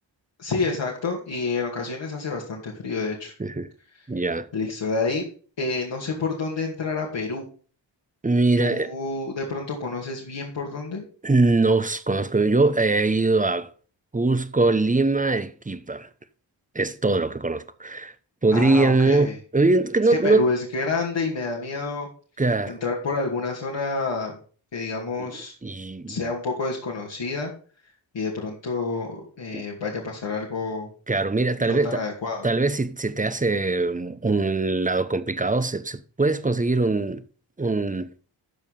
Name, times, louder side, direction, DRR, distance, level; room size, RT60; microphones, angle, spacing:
voice 1, 0.4-3.3 3.9-4.0 4.5-5.3 5.6-7.4 8.6-11.0 18.5-19.4 20.1-22.1 22.7-24.4 24.7-25.5 26.1-27.5 28.1-30.9 31.6-32.5, left 3 dB, 70° left, 2.5 m, -28 dB
voice 2, 4.1-4.5 8.2-8.9 11.2-13.7 14.1-16.1 16.7-18.1 18.4-20.4 22.4-22.8 25.2-25.3 25.6-26.2 29.5-29.6 31.1-32.0 32.4-37.2 37.6-38.1, right 3 dB, 15° right, 0.9 m, -22 dB
13.0 x 4.8 x 5.5 m
cardioid pair, 65°, 46 cm